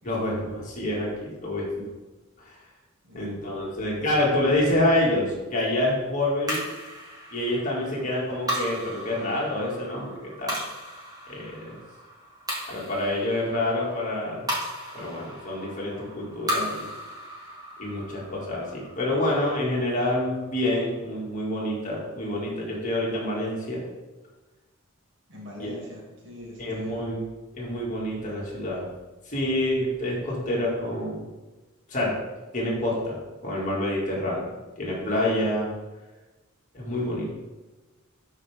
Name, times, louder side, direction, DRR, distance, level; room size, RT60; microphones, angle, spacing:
voice 1, 0.0-1.7 2.4-2.5 3.1-6.7 7.3-10.6 11.3-11.8 12.7-14.5 14.9-16.9 17.8-23.8 25.6-25.7 26.6-27.2 27.5-28.9 29.3-31.3 31.9-32.2 32.5-35.7 36.7-37.3, left 1 dB, 35° left, -5 dB, 2.3 m, -27 dB
voice 2, 3.0-3.9 25.3-27.0, left 1 dB, 60° right, -4 dB, 2.6 m, -44 dB
sound 1, 6.5-21.0, equal, 20° right, 1.8 m, -36 dB
11.5 x 4.8 x 3.6 m, 1.2 s
head